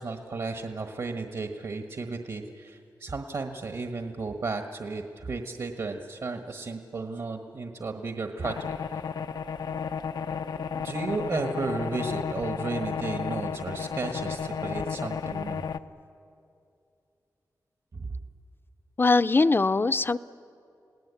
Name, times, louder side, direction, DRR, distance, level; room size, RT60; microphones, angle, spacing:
voice 1, 0.0-8.7 10.7-15.7 17.9-18.1, right 3 dB, 65° right, 4 dB, 1.4 m, -34 dB
sound 1, 8.4-15.8, left 6 dB, 90° left, 0.6 m, -33 dB
voice 2, 19.0-20.2, left 3 dB, 30° left, 14 dB, 0.5 m, -21 dB
28.5 x 18.0 x 8.3 m, 2.6 s
wide cardioid pair, 85°, 7 cm